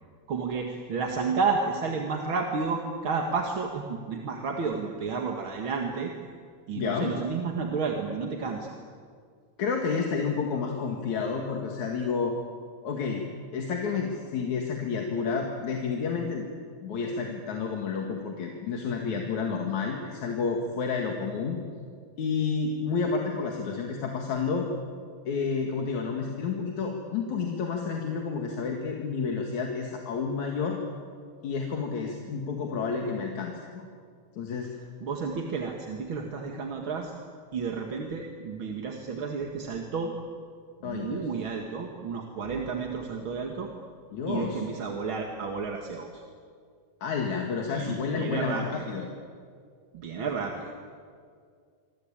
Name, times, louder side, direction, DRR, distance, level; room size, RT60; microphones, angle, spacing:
voice 1, 0.3-6.1 6.7-8.7 35.0-37.1 37.5-40.1 40.8-43.7 44.3-46.2 47.7-48.9 49.9-50.7, right 5 dB, 45° right, 2 dB, 2.4 m, -31 dB
voice 2, 6.7-7.1 9.6-12.3 12.8-13.2 13.5-16.5 16.8-21.6 22.2-24.7 25.3-30.8 31.4-33.9 34.4-34.7 40.8-41.2 44.1-44.6 47.0-49.1, left 5 dB, 75° left, 1 dB, 3.4 m, -30 dB
26.5 x 25.0 x 8.8 m, 2.1 s
omnidirectional pair, 3.4 m